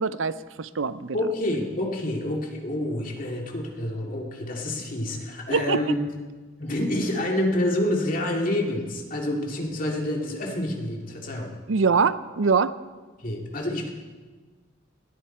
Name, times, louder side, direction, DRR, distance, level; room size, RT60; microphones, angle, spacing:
voice 1, 0.0-1.2 5.5-5.9 11.7-12.8, right 5 dB, 75° right, 15 dB, 0.6 m, -23 dB
voice 2, 1.1-6.0 6.6-11.5 13.2-13.9, left 1 dB, 45° left, 0 dB, 2.5 m, -28 dB
20.0 x 14.0 x 4.5 m, 1.3 s
head